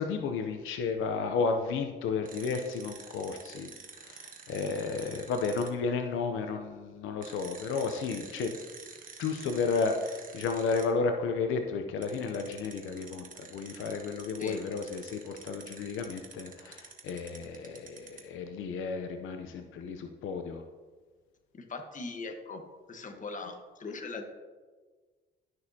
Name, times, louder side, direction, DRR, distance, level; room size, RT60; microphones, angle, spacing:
voice 1, 0.0-3.7 4.0-8.5 9.2-20.6, left 4 dB, 85° left, 6 dB, 0.7 m, -32 dB
sound 1, 2.2-5.7 7.2-10.8 12.0-18.3, right 5 dB, 45° right, 1.3 m, -48 dB
voice 2, 21.5-22.6 22.9-24.2, left 3 dB, 40° left, 5 dB, 1.2 m, -40 dB
12.0 x 6.2 x 2.8 m, 1.4 s
cardioid pair, 90°, 20 cm